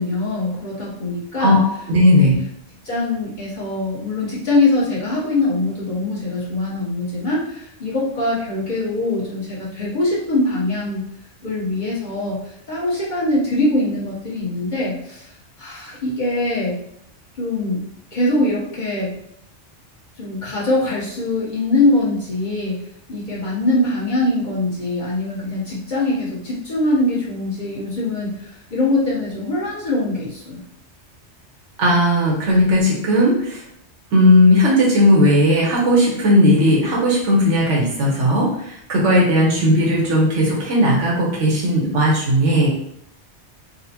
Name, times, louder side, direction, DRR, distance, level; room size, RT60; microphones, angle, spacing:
voice 1, 0.0-1.6 2.1-2.3 2.8-11.0 11.4-12.4 12.7-15.3 15.6-16.8 17.4-17.8 18.1-19.1 20.2-22.8 23.1-30.6, left 2 dB, 45° left, -6 dB, 1.1 m, -22 dB
voice 2, 1.4-2.4 31.8-33.6 34.1-42.7, left 1 dB, 90° right, -3 dB, 1.2 m, -16 dB
4.0 x 2.1 x 2.8 m, 0.71 s
omnidirectional pair, 1.2 m